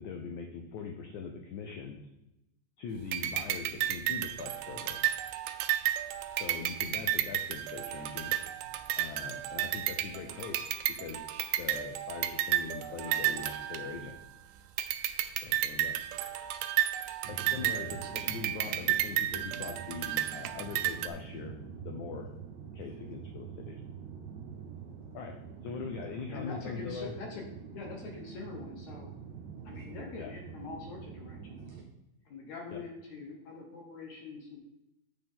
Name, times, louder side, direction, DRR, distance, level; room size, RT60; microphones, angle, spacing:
voice 1, 0.0-2.0 2.8-5.0 6.4-8.3 9.0-10.6 11.0-11.2 11.6-14.1 15.4-15.9 17.3-21.5 21.8-22.3 22.7-23.8 25.1-25.3 25.6-27.2 30.2-30.3 32.7-32.8, left 5 dB, 85° left, 4 dB, 1.7 m, -41 dB
sound 1, 3.1-14.3 14.8-21.1, right 13 dB, 85° right, 1.9 m, -32 dB
voice 2, 17.2-31.8, right 7 dB, 65° right, -1 dB, 1.9 m, -46 dB
voice 3, 26.1-27.4 27.7-29.1 29.7-31.8 32.3-34.6, left 4 dB, 60° left, 0 dB, 2.2 m, -44 dB
7.8 x 6.8 x 3.8 m, 0.89 s
omnidirectional pair, 4.3 m